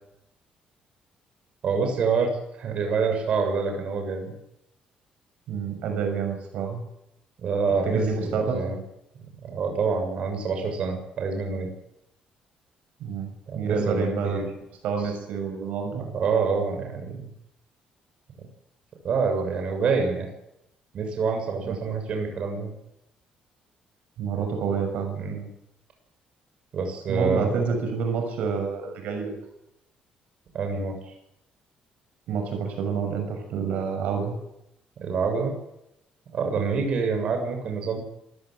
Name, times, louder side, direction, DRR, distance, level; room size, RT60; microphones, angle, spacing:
voice 1, 1.6-2.3 2.6-4.3 7.4-8.8 9.4-11.7 13.5-14.4 16.0-17.3 19.0-20.3 20.9-22.7 25.2-25.5 26.7-27.6 30.5-31.1 35.0-35.5 36.3-38.0, right 5 dB, 45° right, 4 dB, 6.9 m, -26 dB
voice 2, 5.5-6.8 7.8-8.6 13.0-13.3 13.5-14.5 14.8-16.0 21.6-21.8 24.2-25.2 27.1-29.4 32.3-34.4 36.6-36.7, right 5 dB, 75° right, 5 dB, 6.2 m, -28 dB
26.5 x 16.0 x 7.9 m, 0.82 s
cardioid pair, 170°, 2 cm